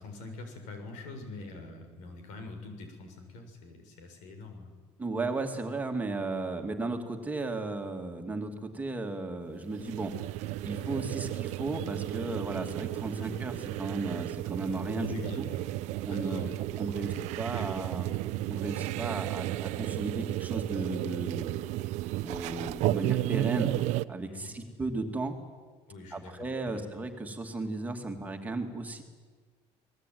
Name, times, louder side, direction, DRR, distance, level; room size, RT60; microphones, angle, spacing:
voice 1, 0.0-4.7 13.2-13.3 14.9-15.7 16.1-16.5 16.9-17.3 17.5-17.9 24.3-24.6 25.9-26.9, left 3 dB, 85° left, 5 dB, 7.0 m, -43 dB
voice 2, 5.0-15.1 16.0-16.5 16.8-18.2 18.5-21.6 22.2-23.7 24.1-25.3 26.1-29.0, right 2 dB, 15° right, 4 dB, 2.5 m, -35 dB
sound 1, 9.7-24.0, right 16 dB, 75° right, 0.8 m, -33 dB
29.0 x 20.0 x 9.4 m, 1.5 s
cardioid pair, 155°, 12 cm